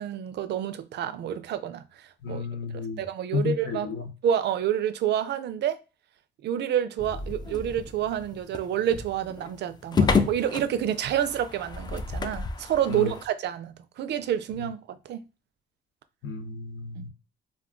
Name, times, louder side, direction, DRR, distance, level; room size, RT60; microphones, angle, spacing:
voice 1, 0.0-2.4 2.7-3.9 4.2-5.8 6.4-15.2 17.0-17.1, right 10 dB, 60° right, 0.4 m, -28 dB
voice 2, 2.2-3.0 3.3-4.1 12.9-13.1 16.2-17.1, left 5 dB, 75° left, 0.8 m, -32 dB
sound 1, 7.0-13.3, left 5 dB, 20° left, 0.3 m, -30 dB
2.3 x 2.2 x 3.6 m
cardioid pair, 90°, 20 cm